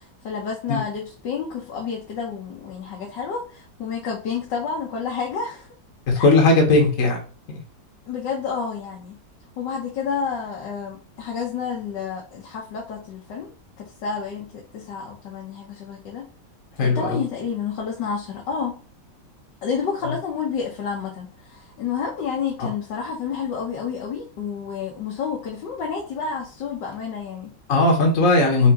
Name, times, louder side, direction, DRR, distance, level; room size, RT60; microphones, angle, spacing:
voice 1, 0.0-5.7 6.1-6.3 8.1-9.2 9.6-13.5 13.8-16.3 16.8-18.8 19.6-27.5, left 6 dB, 70° left, -2 dB, 1.6 m, -30 dB
voice 2, 6.2-7.2 7.5-7.6 16.8-17.2 22.6-22.7 27.7-28.7, left 2 dB, 50° left, 0 dB, 1.4 m, -17 dB
6.0 x 2.9 x 2.9 m, 0.39 s
omnidirectional pair, 2.0 m